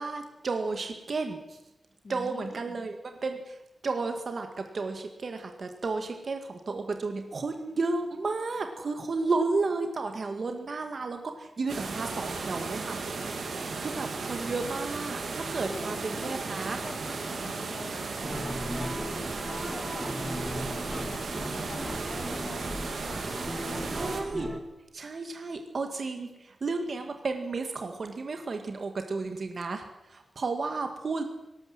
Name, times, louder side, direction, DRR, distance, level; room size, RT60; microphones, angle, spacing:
voice 1, 0.0-1.6 2.1-3.6 3.8-13.0 13.8-16.8 23.8-24.6 24.9-31.2, right 3 dB, 45° right, 6 dB, 1.8 m, -33 dB
voice 2, 2.0-2.8 15.7-16.4 16.8-20.2 20.4-23.9, left 3 dB, 40° left, 7 dB, 2.0 m, -46 dB
sound 1, 11.7-24.2, right 4 dB, 65° right, 3.4 m, -35 dB
sound 2, 18.2-24.6, equal, 5° right, 2.2 m, -37 dB
18.5 x 18.0 x 7.6 m, 0.96 s
wide cardioid pair, 175°, 0 cm